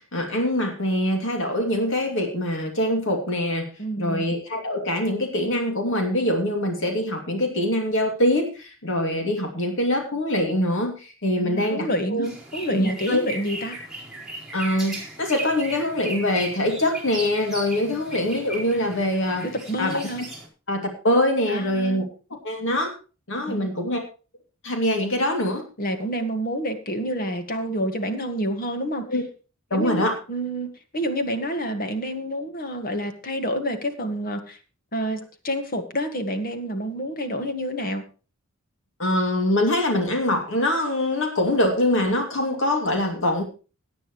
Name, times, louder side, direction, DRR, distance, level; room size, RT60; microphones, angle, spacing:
voice 1, 0.1-3.7 4.0-12.3 12.7-13.2 14.5-19.5 19.8-20.1 20.7-22.0 22.4-22.9 23.3-24.0 24.6-25.6 29.1-29.2 29.7-30.1 39.0-43.4, left 1 dB, 65° left, 3 dB, 2.6 m, -24 dB
voice 2, 3.8-4.3 11.4-13.8 17.9-18.0 19.4-20.2 21.5-22.0 23.5-23.7 25.8-29.1 29.7-34.6 34.9-38.0, equal, 45° left, 7 dB, 1.8 m, -28 dB
sound 1, 12.2-20.5, right 2 dB, ahead, 4.5 m, -37 dB
17.0 x 9.8 x 3.2 m, 0.34 s
head